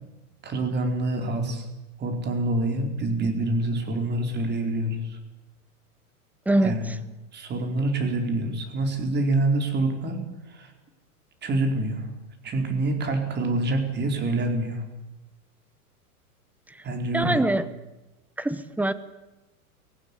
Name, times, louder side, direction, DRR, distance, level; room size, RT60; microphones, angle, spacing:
voice 1, 0.4-1.6 2.0-5.2 6.6-6.9 7.3-10.2 10.5-10.7 11.4-12.1 12.4-14.8 16.8-17.4, right 2 dB, 20° right, 5 dB, 4.5 m, -26 dB
voice 2, 6.5-6.9 17.1-17.7 18.4-18.9, right 1 dB, 5° right, 13 dB, 0.9 m, -23 dB
24.0 x 16.5 x 9.9 m, 1.0 s
hypercardioid pair, 135°, 46 cm